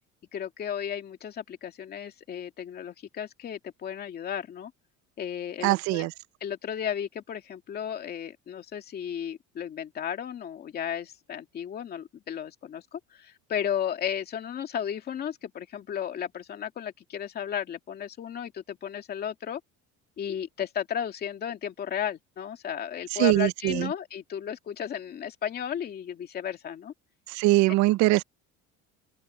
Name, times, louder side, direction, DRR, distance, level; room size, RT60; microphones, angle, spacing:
voice 1, 0.3-4.7 5.2-6.1 6.4-19.6 20.2-26.9, left 9 dB, 35° left, 2.5 m, -34 dB
voice 2, 5.6-6.1 23.2-23.9 27.3-28.2, right 19 dB, 70° right, 0.7 m, -22 dB
open air
cardioid pair, 180°, 30 cm